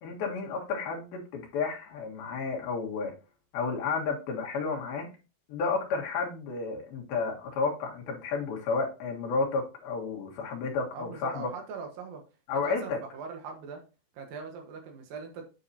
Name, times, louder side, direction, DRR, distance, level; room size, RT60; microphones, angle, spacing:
voice 1, 0.0-3.1 3.5-5.1 5.5-11.5 12.5-13.0, left 4 dB, 80° left, 0 dB, 3.4 m, -31 dB
voice 2, 10.9-12.2 12.6-13.8 14.1-15.5, right 5 dB, 75° right, 4 dB, 2.9 m, -41 dB
8.8 x 6.5 x 2.7 m, 0.32 s
omnidirectional pair, 4.3 m